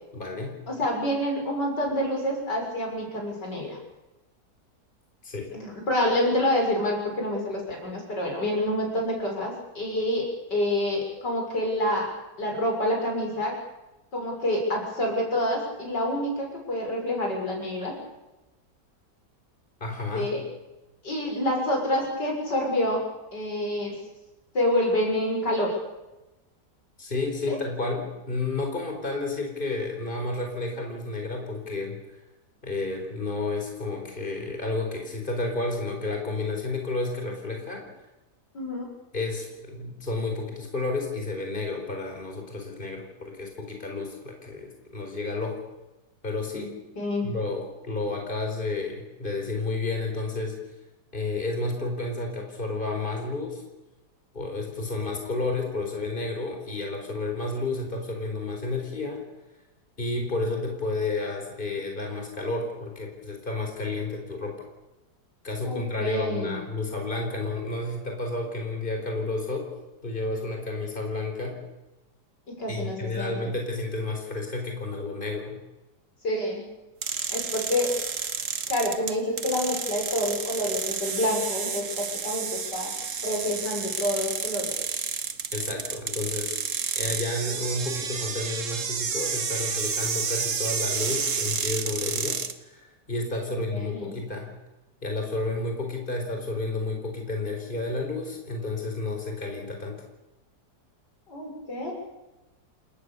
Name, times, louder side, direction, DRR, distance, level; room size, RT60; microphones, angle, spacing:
voice 1, 0.1-0.6 5.2-5.5 19.8-20.4 27.0-32.0 32.6-37.8 39.1-45.6 46.2-46.7 47.2-50.5 51.1-53.6 54.3-59.2 60.0-64.7 65.4-69.7 70.0-71.6 72.7-75.6 85.5-86.6 86.9-94.5 95.0-100.0, left 2 dB, 30° left, 3 dB, 4.8 m, -31 dB
voice 2, 0.7-3.8 5.5-12.1 12.4-13.5 14.1-18.0 20.1-20.4 21.0-23.0 23.3-23.9 24.5-25.7 27.5-27.6 38.5-38.9 46.5-46.7 47.0-47.3 65.6-66.6 72.5-73.5 76.2-76.6 77.3-78.0 78.7-82.9 83.2-84.8 93.5-94.2 101.3-101.9, left 1 dB, 80° left, 0 dB, 7.4 m, -27 dB
sound 1, 77.0-92.5, right 6 dB, 50° right, 1.6 m, -30 dB
29.5 x 19.0 x 6.9 m, 1.0 s
omnidirectional pair, 1.8 m